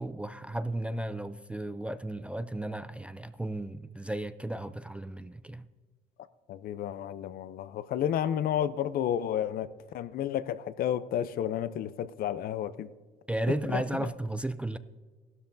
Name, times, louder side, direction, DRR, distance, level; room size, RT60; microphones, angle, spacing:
voice 1, 0.0-5.7 13.3-14.8, right 1 dB, 5° right, 12 dB, 0.3 m, -34 dB
voice 2, 6.5-9.7 9.9-12.9 13.7-14.1, left 10 dB, 60° left, 15 dB, 0.5 m, -31 dB
15.0 x 12.5 x 2.6 m, 1.4 s
cardioid pair, 110°, 17 cm